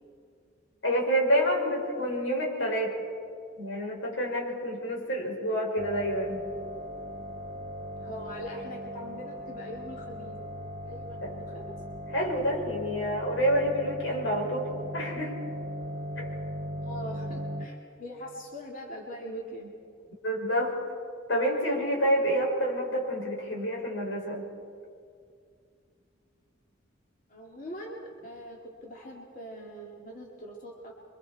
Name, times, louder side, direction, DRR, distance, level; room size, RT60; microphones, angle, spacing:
voice 1, 0.8-2.9 3.6-6.4 11.2-11.3 12.1-14.7 14.9-15.3 16.2-16.3 20.2-20.7 21.3-24.5, equal, 85° left, -1 dB, 5.7 m, -28 dB
sound 1, 5.8-17.7, equal, 55° right, 1.2 m, -38 dB
voice 2, 7.9-10.4 10.8-11.8 16.8-19.7 27.3-30.9, equal, 45° left, -2 dB, 2.7 m, -42 dB
28.5 x 24.5 x 4.3 m, 2.3 s
head